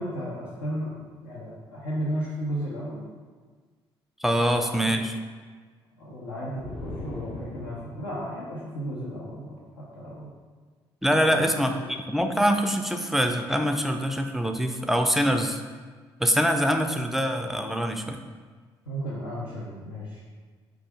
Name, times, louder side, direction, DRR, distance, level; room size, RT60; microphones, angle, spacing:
voice 1, 0.0-3.0 4.6-4.9 6.0-10.3 11.1-11.4 18.9-20.2, equal, 75° left, -9 dB, 0.7 m, -34 dB
voice 2, 4.2-5.1 11.0-15.6 16.2-18.2, equal, ahead, 5 dB, 0.4 m, -24 dB
sound 1, 6.6-8.2, left 1 dB, 45° left, 0.9 m, -38 dB
4.7 x 2.4 x 4.7 m, 1.5 s
figure-of-eight pair, 45°, 13 cm